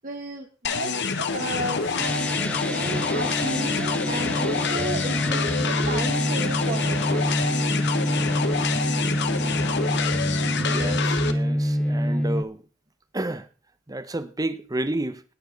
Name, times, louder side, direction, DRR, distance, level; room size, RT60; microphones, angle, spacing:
voice 1, 0.0-2.4 2.7-7.4, right 2 dB, 40° right, 1.2 m, -34 dB
sound 1, 0.6-11.3, left 5 dB, 60° left, 1.2 m, -27 dB
sound 2, 2.0-12.4, equal, 5° left, 0.6 m, -26 dB
voice 2, 10.7-12.6 13.1-13.5 13.9-15.2, right 1 dB, 20° right, 0.9 m, -30 dB
19.0 x 7.1 x 4.0 m
head